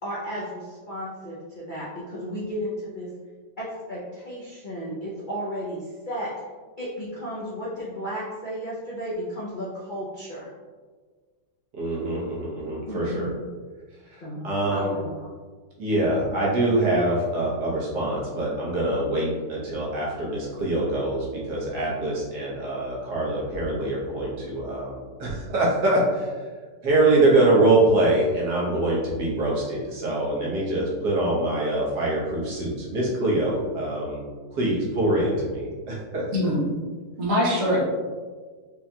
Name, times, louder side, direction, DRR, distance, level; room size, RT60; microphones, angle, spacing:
voice 1, 0.0-3.1 3.6-6.3 6.8-10.5 12.9-13.3 14.2-14.4 14.7-15.2, equal, 60° left, -6 dB, 0.5 m, -33 dB
voice 2, 11.8-13.3 14.1-15.0 15.8-26.3 26.8-36.2, right 2 dB, 75° right, -5 dB, 1.6 m, -24 dB
voice 3, 36.3-36.7 37.2-37.8, equal, 55° right, -5 dB, 1.3 m, -22 dB
5.2 x 2.9 x 2.2 m, 1.5 s
omnidirectional pair, 1.8 m